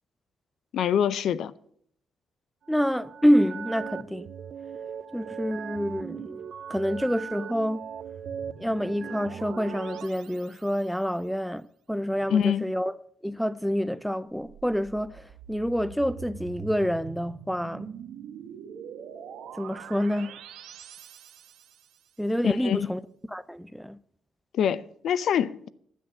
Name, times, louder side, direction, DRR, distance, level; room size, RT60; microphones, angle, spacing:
voice 1, 0.7-1.5 12.3-12.7 22.4-22.9 24.5-25.7, left 8 dB, 70° left, 0.5 m, -25 dB
voice 2, 2.7-4.3 5.1-6.4 6.7-7.9 8.6-11.6 11.9-12.9 13.2-17.9 19.6-20.4 22.2-23.0 23.3-24.0, equal, ahead, 0.4 m, -27 dB
sound 1, 2.7-10.1, right 8 dB, 60° right, 0.5 m, -39 dB
sound 2, 7.9-11.0 14.4-22.0, right 8 dB, 80° right, 1.0 m, -45 dB
10.0 x 6.5 x 7.9 m
cardioid pair, 90°, 0 cm